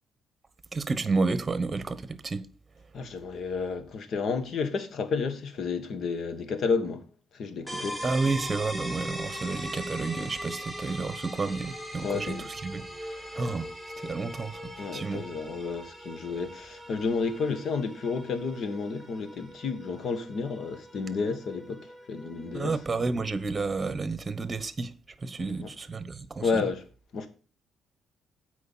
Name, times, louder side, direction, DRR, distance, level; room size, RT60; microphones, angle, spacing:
voice 1, 0.7-2.5 8.0-12.4 12.6-13.7 14.0-15.3 22.5-24.9 25.2-26.6, right 3 dB, 25° right, 1.1 m, -31 dB
voice 2, 2.9-7.0 7.3-8.0 12.0-12.5 14.8-22.8 25.4-25.7 26.4-26.8 27.1-27.3, left 4 dB, 60° left, 1.6 m, -31 dB
sound 1, 7.7-23.2, equal, 5° left, 2.9 m, -41 dB
8.2 x 4.9 x 7.3 m
cardioid pair, 90°, 0 cm